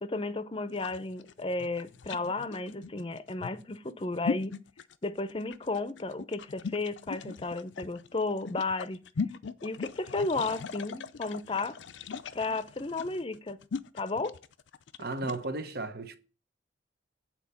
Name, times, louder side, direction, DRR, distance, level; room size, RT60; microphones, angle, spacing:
voice 1, 0.0-4.6 5.0-9.0 9.6-11.8 12.3-13.6 14.0-14.3, left 3 dB, 30° left, 0.6 m, -33 dB
sound 1, 0.7-15.4, left 5 dB, 85° left, 0.5 m, -39 dB
voice 2, 15.0-16.2, right 2 dB, 60° right, 0.9 m, -34 dB
8.7 x 4.3 x 7.0 m
head